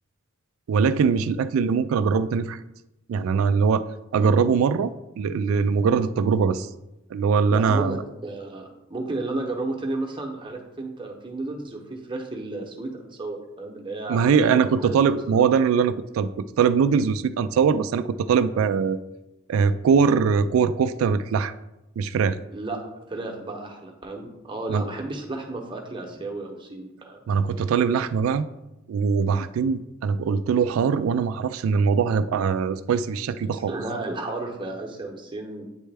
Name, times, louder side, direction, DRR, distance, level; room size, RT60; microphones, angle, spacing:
voice 1, 0.7-2.6 3.1-3.8 4.1-6.7 7.1-8.0 14.1-16.3 16.6-19.0 19.5-21.5 22.0-22.4 24.7-24.8 27.3-28.5 28.9-33.7, right 6 dB, 85° right, 14 dB, 0.3 m, -22 dB
voice 2, 7.5-15.4 22.5-22.8 23.1-27.2 33.5-35.6, right 2 dB, 25° right, 1 dB, 0.8 m, -33 dB
8.8 x 3.2 x 3.4 m, 0.95 s
head